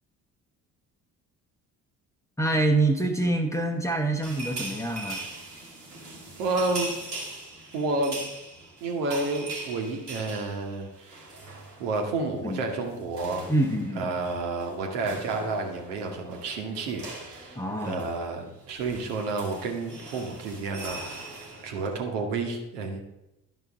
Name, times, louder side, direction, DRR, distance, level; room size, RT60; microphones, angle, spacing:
voice 1, 2.4-5.3 12.4-12.6 13.5-14.2 17.5-18.0, right 2 dB, 5° left, 3 dB, 0.9 m, -26 dB
sound 1, 4.2-12.1 12.4-12.6 12.8-21.9, right 2 dB, 85° right, 1.4 m, -41 dB
voice 2, 6.4-6.9 7.7-8.2 8.8-11.1 11.8-13.5 13.9-23.0, right 3 dB, 65° right, 2 dB, 1.3 m, -30 dB
11.0 x 5.9 x 3.6 m, 0.90 s
figure-of-eight pair, 50°, 47 cm